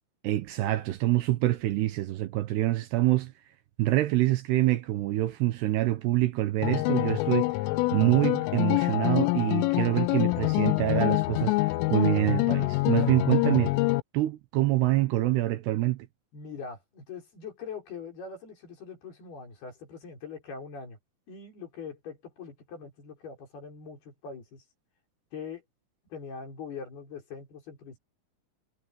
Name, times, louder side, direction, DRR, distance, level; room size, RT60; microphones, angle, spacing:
voice 1, 0.2-3.3 3.8-7.5 7.9-13.7 14.1-16.1, right 16 dB, 80° right, 2.4 m, -26 dB
sound 1, 6.6-14.0, left 21 dB, 80° left, 3.1 m, -26 dB
voice 2, 16.3-21.0 21.3-24.6 25.3-25.6 26.1-28.0, left 5 dB, 50° left, 7.1 m, -42 dB
omnidirectional pair, 6.0 m